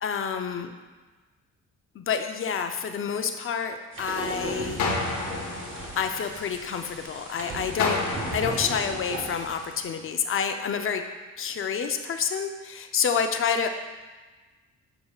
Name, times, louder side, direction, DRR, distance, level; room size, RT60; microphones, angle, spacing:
voice 1, 0.0-0.7 1.9-4.8 5.9-8.0 8.3-11.0 11.4-13.7, left 6 dB, 45° left, 6 dB, 0.6 m, -28 dB
sound 1, 3.9-9.8, right 2 dB, 40° right, 1.5 m, -37 dB
sound 2, 4.8-6.9 7.8-9.9, left 3 dB, 65° left, 1.0 m, -32 dB
6.9 x 6.8 x 2.4 m, 1.3 s
cardioid pair, 90°, 30 cm